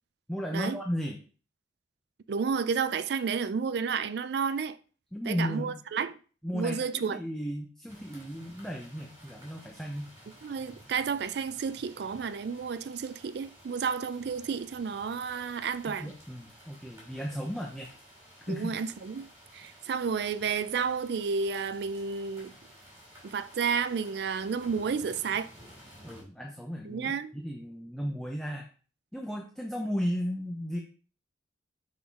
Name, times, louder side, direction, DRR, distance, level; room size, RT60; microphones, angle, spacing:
voice 1, 0.3-1.2 5.1-5.8 6.4-10.1 15.9-17.9 18.5-18.8 26.0-28.7 29.1-30.8, equal, 5° left, 0.6 m, -35 dB
voice 2, 2.3-4.8 5.3-6.1 6.5-7.2 10.4-16.1 18.5-19.3 19.5-22.5 23.2-25.5 26.8-27.3, right 6 dB, 60° right, 0.3 m, -31 dB
sound 1, 7.9-26.2, equal, 15° right, 2.5 m, -54 dB
6.2 x 3.8 x 4.6 m
head